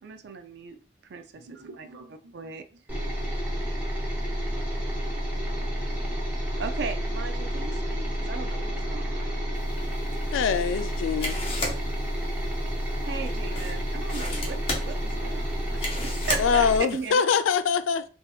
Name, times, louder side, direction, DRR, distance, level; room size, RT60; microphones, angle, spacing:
voice 1, 0.0-1.9 2.3-2.7 6.6-9.3 13.0-17.2, right 5 dB, 60° right, 0.4 m, -37 dB
voice 2, 1.3-3.3 5.5-5.7, right 3 dB, 80° right, 0.8 m, -51 dB
sound 1, 2.9-16.8, equal, 10° right, 0.8 m, -30 dB
sound 2, 9.5-17.1, left 2 dB, 30° left, 0.7 m, -37 dB
voice 3, 10.3-11.4 16.4-18.1, left 6 dB, 85° left, 0.3 m, -24 dB
3.5 x 2.7 x 2.3 m
head